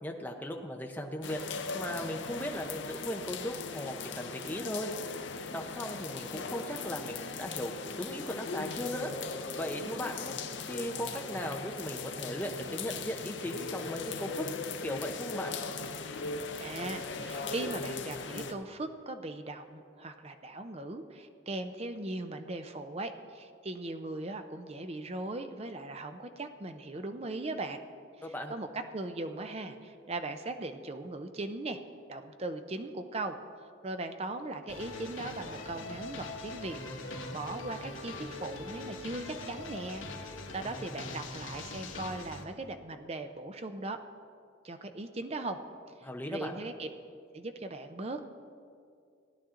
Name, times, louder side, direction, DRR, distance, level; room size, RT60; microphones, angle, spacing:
voice 1, 0.0-1.4 1.7-4.9 5.5-9.1 9.5-10.3 10.7-14.5 14.8-15.6 28.2-28.5 46.0-46.6, left 1 dB, 10° left, 2 dB, 0.8 m, -37 dB
sound 1, 1.2-18.5, left 4 dB, 65° left, 0.7 m, -39 dB
voice 2, 16.6-27.8 28.2-31.8 32.1-36.8 37.0-44.0 44.6-45.6 46.3-46.9 47.3-48.2, right 2 dB, 30° right, 8 dB, 0.6 m, -39 dB
sound 2, 34.7-42.4, left 2 dB, 85° left, 1.3 m, -42 dB
16.5 x 10.0 x 3.8 m, 2.3 s
head